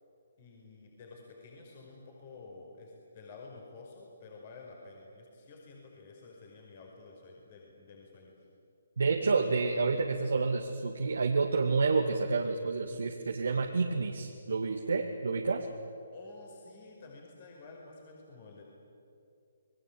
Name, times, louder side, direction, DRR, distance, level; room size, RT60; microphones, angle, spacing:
voice 1, 0.4-8.5 16.1-18.6, left 3 dB, 40° left, 0 dB, 5.3 m, -51 dB
voice 2, 9.0-15.7, right 4 dB, 75° right, 1 dB, 2.2 m, -29 dB
28.0 x 21.0 x 8.8 m, 2.6 s
hypercardioid pair, 150°, 0 cm